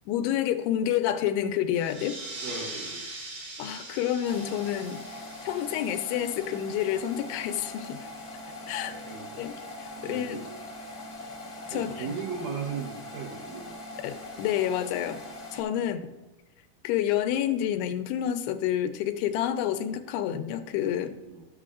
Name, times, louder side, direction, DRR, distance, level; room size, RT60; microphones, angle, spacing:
voice 1, 0.1-2.2 3.6-5.0 5.4-8.0 8.7-8.9 9.4-9.5 9.8-10.4 11.7-12.1 14.0-15.2 15.5-16.0 16.8-21.2, left 10 dB, 85° left, 8 dB, 2.7 m, -29 dB
sound 1, 1.7-6.9, right 2 dB, 90° right, 4.4 m, -42 dB
voice 2, 2.4-3.1 8.8-9.4 10.0-10.5 11.7-13.8 15.8-16.1 21.2-21.5, right 5 dB, 70° right, -1 dB, 2.2 m, -37 dB
sound 2, 4.2-15.6, left 1 dB, 35° left, 0.8 m, -42 dB
13.5 x 6.8 x 2.4 m, 1.1 s
omnidirectional pair, 4.6 m